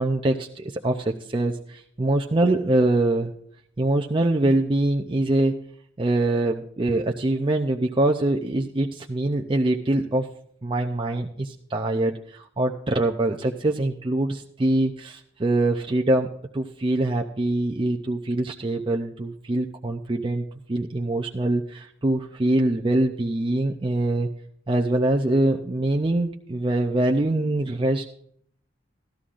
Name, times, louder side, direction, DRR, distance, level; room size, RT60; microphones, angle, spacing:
voice 1, 0.0-3.3 3.8-5.7 6.0-10.3 10.6-16.3 16.5-24.3 24.7-28.2, right 2 dB, 25° right, 2 dB, 0.5 m, -24 dB
17.0 x 13.0 x 2.5 m, 0.66 s
head